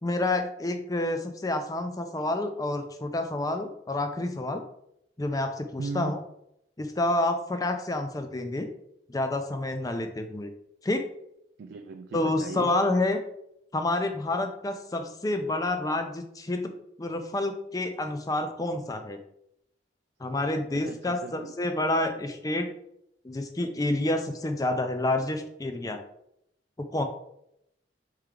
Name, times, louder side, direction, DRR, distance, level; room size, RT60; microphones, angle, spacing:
voice 1, 0.0-4.6 5.2-6.2 6.8-8.7 9.1-10.5 10.8-11.0 12.1-13.2 13.7-16.7 17.0-19.2 20.2-22.7 23.2-26.0 26.9-27.0, left 2 dB, 20° left, 7 dB, 0.5 m, -28 dB
voice 2, 5.8-6.2 11.6-12.8 20.7-21.5, right 4 dB, 85° right, 5 dB, 0.4 m, -37 dB
4.5 x 3.2 x 3.7 m, 0.77 s
head